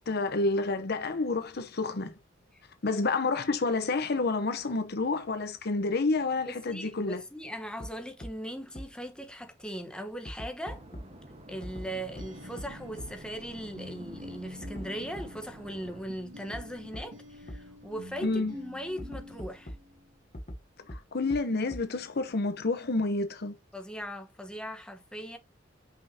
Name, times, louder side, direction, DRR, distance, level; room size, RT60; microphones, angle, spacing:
voice 1, 0.1-2.1 2.8-7.2 18.2-18.5 20.9-23.5, left 3 dB, 55° left, 0.9 m, -29 dB
voice 2, 6.5-10.8 11.5-19.7 23.7-25.4, equal, 5° left, 1.1 m, -39 dB
sound 1, 7.8-7.9 8.2-8.3 8.8-8.9 10.3-11.0 11.6-11.9 12.2-12.3 12.6-12.7 13.0-13.1 14.6-14.9 15.2-15.3 16.5-16.6 16.9-17.0 17.5-17.6 19.0-19.8 20.3-20.6 20.9-21.0 21.3-21.4 21.7-21.8, equal, 40° left, 1.2 m, -39 dB
sound 2, 10.7-16.0, right 1 dB, 35° right, 1.3 m, -49 dB
sound 3, 11.7-20.4, left 1 dB, 70° right, 1.7 m, -48 dB
6.0 x 5.6 x 2.8 m
head